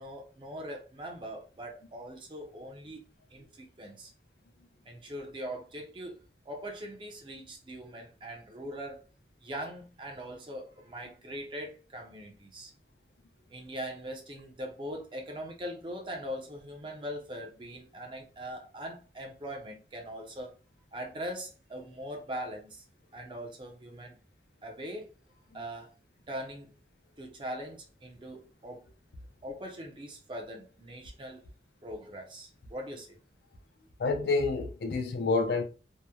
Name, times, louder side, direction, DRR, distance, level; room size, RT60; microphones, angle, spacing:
voice 1, 0.0-3.0 3.3-4.1 4.9-9.1 9.4-12.7 13.5-20.5 20.9-22.8 23.1-24.2 24.6-25.1 25.5-25.9 26.3-26.8 27.2-28.9 29.4-31.4 31.8-33.2, equal, 30° right, 0.5 m, -41 dB
voice 2, 34.0-35.6, left 3 dB, 60° left, 0.5 m, -28 dB
2.8 x 2.1 x 2.2 m
head